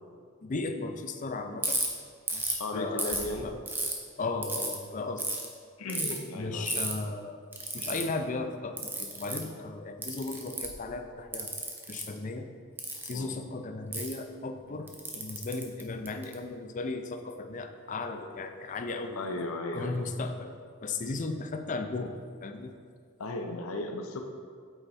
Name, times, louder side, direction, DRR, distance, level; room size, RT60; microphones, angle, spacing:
voice 1, 0.4-1.8 2.3-3.6 4.2-5.3 6.4-7.4 7.7-11.5 11.9-12.5 13.0-19.2 19.7-20.5 20.8-22.8, left 3 dB, 35° left, 7 dB, 0.4 m, -36 dB
Ratchet pawl, 1.6-1.9 2.3-2.6 3.0-3.9 4.4-4.7 5.2-5.4 5.9-6.2 6.7-6.9 7.5-8.0 8.8-9.4 10.0-10.8 11.3-12.0 12.8-13.1 13.9-14.1 14.9-16.3, right 2 dB, 10° right, 0.6 m, -32 dB
voice 2, 2.6-3.5 5.8-6.7 13.1-13.3 19.2-20.0 23.2-24.2, left 2 dB, 75° left, 4 dB, 0.6 m, -35 dB
8.0 x 4.4 x 4.1 m, 2.1 s
head